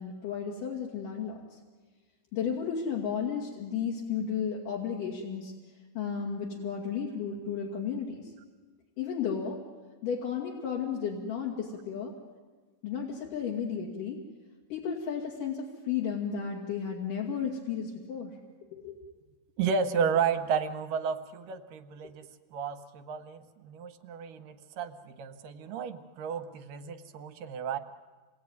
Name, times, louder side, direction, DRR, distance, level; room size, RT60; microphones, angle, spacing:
voice 1, 0.0-1.6 2.3-5.5 6.0-8.3 9.0-9.6 10.0-12.1 12.8-14.2 14.7-18.4 18.7-19.0, left 7 dB, 70° left, -3 dB, 3.9 m, -33 dB
voice 2, 19.6-27.8, right 6 dB, 75° right, 8 dB, 2.7 m, -32 dB
27.5 x 21.0 x 9.6 m, 1.3 s
omnidirectional pair, 4.0 m